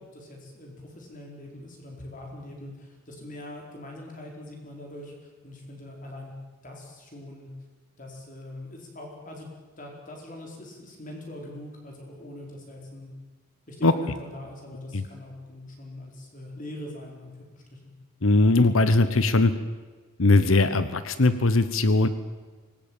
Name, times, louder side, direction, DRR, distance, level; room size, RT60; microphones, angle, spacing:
voice 1, 0.0-6.3 6.6-7.5 8.0-9.5 9.8-13.1 13.7-17.8, left 1 dB, 40° left, 0 dB, 4.5 m, -42 dB
voice 2, 18.2-19.5 20.2-22.1, left 2 dB, 75° left, 12 dB, 1.1 m, -20 dB
25.0 x 17.0 x 9.0 m, 1.4 s
head